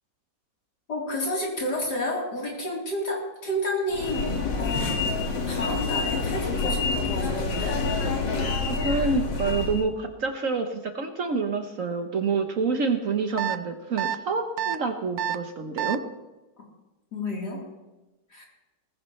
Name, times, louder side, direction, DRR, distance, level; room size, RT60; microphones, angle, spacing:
voice 1, 0.9-5.0 5.5-7.8 17.1-17.6 18.3-18.5, left 1 dB, 65° left, -3 dB, 4.3 m, -30 dB
sound 1, 3.9-9.8, left 4 dB, 85° left, 2.6 m, -27 dB
voice 2, 8.7-16.0, right 4 dB, 55° right, 6 dB, 1.2 m, -27 dB
sound 2, 13.4-13.6 14.0-14.2 14.6-14.8 15.2-15.4 15.8-16.0, right 10 dB, 90° right, 1.3 m, -27 dB
19.0 x 15.5 x 3.2 m, 1.1 s
omnidirectional pair, 1.9 m